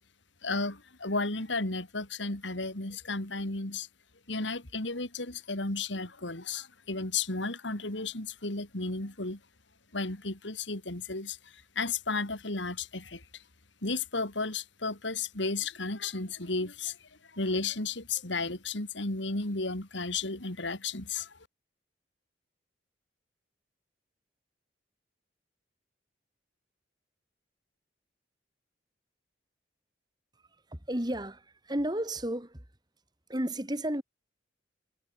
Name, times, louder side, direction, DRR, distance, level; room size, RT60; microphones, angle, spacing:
voice 1, 0.4-3.9 4.3-9.4 9.9-13.4 13.8-17.0 17.3-21.3, left 3 dB, 80° left, 3.6 m, -33 dB
voice 2, 30.7-32.6 33.3-34.0, right 1 dB, 20° right, 2.7 m, -32 dB
head